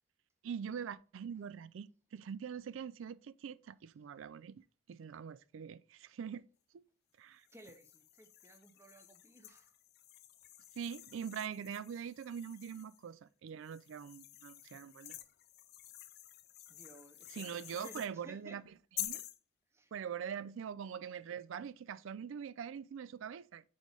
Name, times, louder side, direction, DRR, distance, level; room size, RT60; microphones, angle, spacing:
voice 1, 0.4-4.6 4.9-6.5 7.2-7.5 10.8-15.2 17.3-18.7 19.0-19.2 19.9-23.6, right 7 dB, 65° right, 0.3 m, -43 dB
sound 1, 7.4-13.0 13.6-18.1 19.0-19.4, left 13 dB, 50° left, 0.4 m, -49 dB
voice 2, 7.5-9.7 16.7-18.6 19.7-19.9, right 1 dB, 10° right, 0.7 m, -57 dB
4.7 x 4.2 x 5.2 m
head